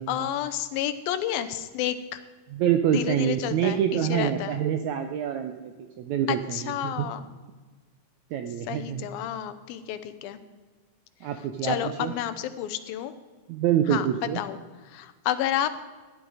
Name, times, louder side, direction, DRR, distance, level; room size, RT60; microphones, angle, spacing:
voice 1, 0.1-2.2 2.9-4.6 6.3-7.3 8.7-10.4 11.6-13.1 13.9-14.1 14.4-14.6 14.9-15.7, left 11 dB, 90° left, 11 dB, 2.6 m, -30 dB
voice 2, 2.5-7.1 8.3-9.0 11.2-12.1 13.5-14.4, right 9 dB, 80° right, 7 dB, 1.6 m, -26 dB
15.0 x 10.5 x 4.8 m, 1.3 s
omnidirectional pair, 4.1 m